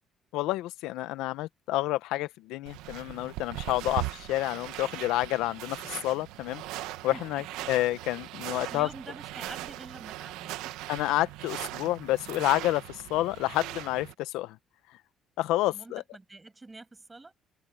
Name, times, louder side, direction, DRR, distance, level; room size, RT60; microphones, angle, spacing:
voice 1, 0.3-6.6 7.0-8.9 10.9-14.6 15.4-16.0, left 16 dB, 85° left, 1.0 m, -29 dB
sound 1, 2.7-14.1, right 17 dB, 85° right, 1.4 m, -39 dB
voice 2, 7.1-7.4 8.6-10.7 15.7-17.3, right 3 dB, 20° right, 6.5 m, -46 dB
open air
supercardioid pair, 75°, 0 cm